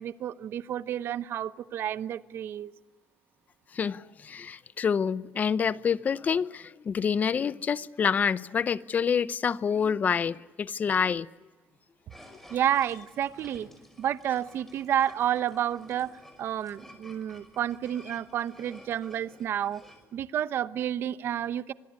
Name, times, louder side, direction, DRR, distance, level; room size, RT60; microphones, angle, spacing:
voice 1, 0.0-2.7 12.5-13.7 14.0-19.8 20.1-21.7, right 10 dB, 60° right, 0.9 m, -30 dB
voice 2, 3.7-11.3, left 6 dB, 35° left, 0.8 m, -27 dB
sound 1, 12.1-20.1, left 1 dB, 5° left, 5.7 m, -53 dB
25.5 x 21.0 x 9.6 m
cardioid pair, 130°, 4 cm